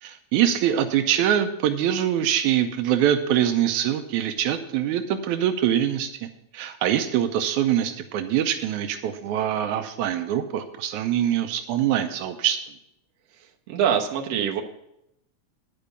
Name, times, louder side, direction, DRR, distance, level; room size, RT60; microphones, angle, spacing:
voice 1, 0.0-6.3 6.5-12.6, right 10 dB, 85° right, 7 dB, 2.1 m, -24 dB
voice 2, 13.7-14.6, right 8 dB, 65° right, 1 dB, 1.9 m, -24 dB
10.0 x 5.2 x 8.3 m, 0.81 s
omnidirectional pair, 3.4 m